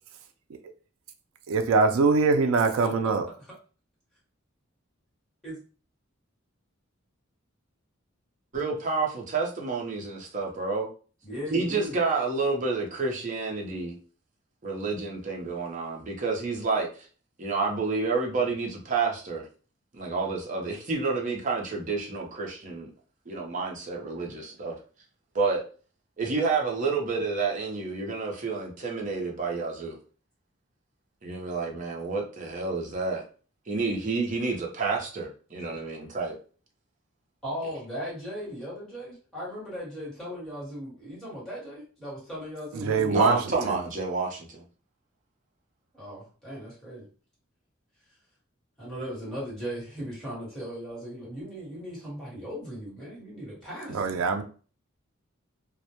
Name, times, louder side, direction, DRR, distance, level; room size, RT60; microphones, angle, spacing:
voice 1, 1.5-3.3 42.7-43.8 53.9-54.4, right 4 dB, 80° right, 0.3 m, -23 dB
voice 2, 8.5-10.9 11.5-13.9 14.6-16.9 17.4-19.4 19.9-22.9 23.3-24.8 25.3-25.6 26.2-30.0 31.2-33.2 33.7-36.3 43.1-44.6, right 4 dB, 40° right, 0.6 m, -29 dB
voice 3, 11.2-11.9 37.4-43.7 45.9-47.1 48.8-54.4, equal, ahead, 1.2 m, -38 dB
2.1 x 2.1 x 2.8 m
head